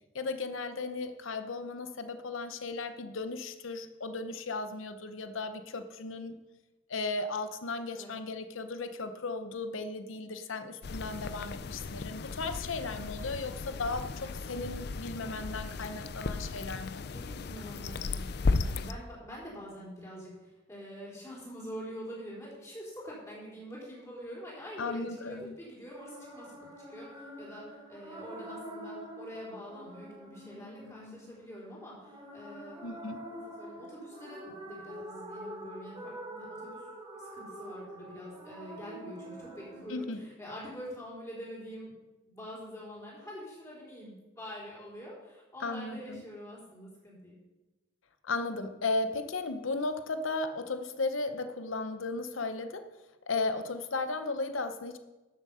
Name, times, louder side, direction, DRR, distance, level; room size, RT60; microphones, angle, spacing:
voice 1, 0.1-6.4 6.9-17.1 24.8-25.5 32.8-33.2 39.9-40.2 45.6-46.2 48.2-52.9 53.3-55.0, left 3 dB, 80° left, 10 dB, 0.8 m, -35 dB
sound 1, 10.8-18.9, left 3 dB, 55° left, 0.4 m, -35 dB
voice 2, 17.1-32.8 33.3-36.9 37.2-42.0 42.2-47.4, equal, 15° left, -6 dB, 4.0 m, -45 dB
sound 2, 25.9-39.8, right 1 dB, 20° right, 2.8 m, -46 dB
13.0 x 7.3 x 5.6 m, 1.1 s
head